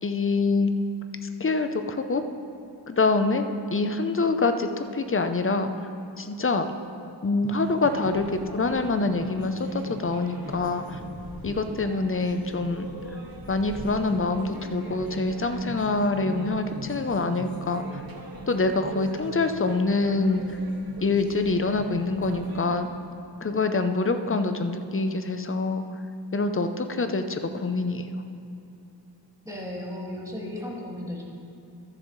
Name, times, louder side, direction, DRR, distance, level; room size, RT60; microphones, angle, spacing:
voice 1, 0.0-0.7 1.2-2.2 2.9-3.5 3.7-5.9 6.2-6.7 7.2-11.0 11.4-12.9 13.5-18.0 18.5-20.6 21.0-22.9 23.4-25.8 26.3-28.1, left 3 dB, 30° left, 8 dB, 0.6 m, -25 dB
sound 1, 7.4-22.7, right 2 dB, 55° right, 1.3 m, -40 dB
voice 2, 29.5-31.2, left 1 dB, 10° right, -4 dB, 2.0 m, -35 dB
13.5 x 7.4 x 3.2 m, 2.7 s
wide cardioid pair, 50°, 43 cm